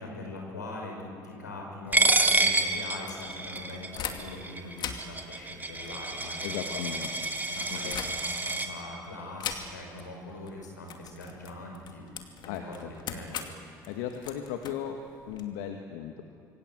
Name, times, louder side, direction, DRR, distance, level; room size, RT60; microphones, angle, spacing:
voice 1, 0.0-7.1 7.5-12.0 12.4-13.5, left 2 dB, 90° left, 1 dB, 5.8 m, -42 dB
Coin (dropping), 1.9-8.7, right 2 dB, 20° right, 2.7 m, -28 dB
sound 1, 2.1-4.5 4.7-8.6 9.4-10.1 10.3-10.5 10.8-15.4, left 8 dB, 50° left, 2.5 m, -41 dB
voice 2, 6.4-7.3 7.7-7.9 12.5-12.9 13.9-15.0 15.2-16.2, left 9 dB, 70° left, 4 dB, 1.8 m, -36 dB
26.0 x 25.0 x 7.8 m, 2.5 s
hypercardioid pair, 60°, 9 cm